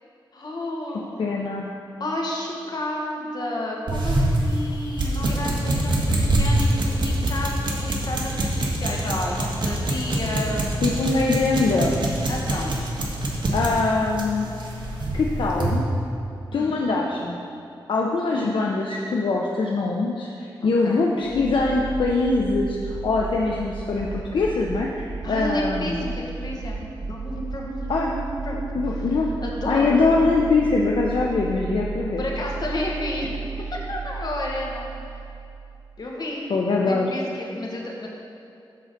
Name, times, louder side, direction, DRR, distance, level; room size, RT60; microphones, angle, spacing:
voice 1, 0.3-1.4 2.0-10.7 12.3-12.8 16.5-16.9 20.8-21.0 25.2-28.7 29.0-29.1 29.4-30.0 32.2-34.9 36.0-36.5 36.8-38.1, left 1 dB, 50° left, -2 dB, 1.4 m, -31 dB
voice 2, 1.2-1.7 10.8-12.0 13.5-14.5 15.1-15.9 16.5-17.4 17.9-26.1 27.9-28.1 28.5-29.3 29.7-32.2 36.5-37.1, left 3 dB, 70° left, -1 dB, 0.6 m, -23 dB
sound 1, 3.9-15.8, right 1 dB, 60° right, 1.4 m, -25 dB
sound 2, 21.2-36.0, right 5 dB, 35° right, 0.5 m, -34 dB
9.4 x 3.9 x 6.6 m, 2.6 s
wide cardioid pair, 85°, 9 cm